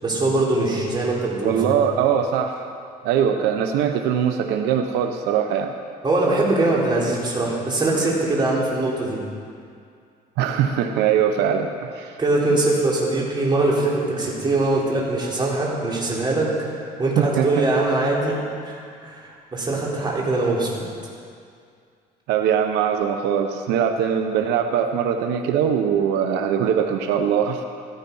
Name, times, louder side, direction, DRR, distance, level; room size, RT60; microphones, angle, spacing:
voice 1, 0.0-1.7 6.0-9.2 12.2-20.8, right 2 dB, 25° right, -4 dB, 4.0 m, -22 dB
voice 2, 1.4-2.7 3.0-5.7 10.4-12.2 17.2-17.6 22.3-27.6, right 8 dB, 90° right, 6 dB, 0.9 m, -21 dB
15.0 x 14.5 x 5.5 m, 2.3 s
cardioid pair, 110°, 17 cm